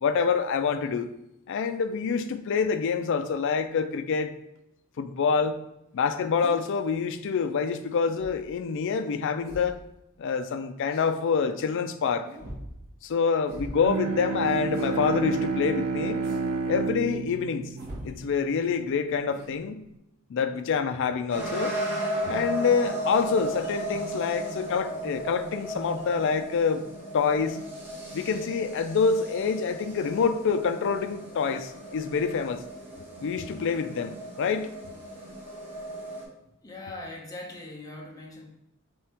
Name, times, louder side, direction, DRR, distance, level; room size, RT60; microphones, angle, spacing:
voice 1, 0.0-1.1 1.5-4.3 5.0-5.6 5.9-9.8 10.2-12.3 13.0-16.2 16.7-17.7 18.0-19.8 20.3-21.8 22.3-26.8 27.1-27.6 28.1-32.6 33.2-34.7, left 5 dB, 55° left, 9 dB, 0.3 m, -26 dB
sound 1, 6.4-6.6 7.9-8.5 9.4-9.8 10.9-11.2 12.2-12.8 13.5-13.8 14.7-14.9 16.2-16.5 17.8-18.1 19.3-19.5, right 1 dB, 50° right, 1.0 m, -41 dB
Bowed string instrument, 13.6-19.0, right 4 dB, 75° right, 0.3 m, -31 dB
sound 2, 21.3-36.2, right 1 dB, 10° right, 1.4 m, -35 dB
voice 2, 36.6-38.5, left 2 dB, 15° left, -1 dB, 0.7 m, -40 dB
3.6 x 3.4 x 4.2 m, 0.84 s
head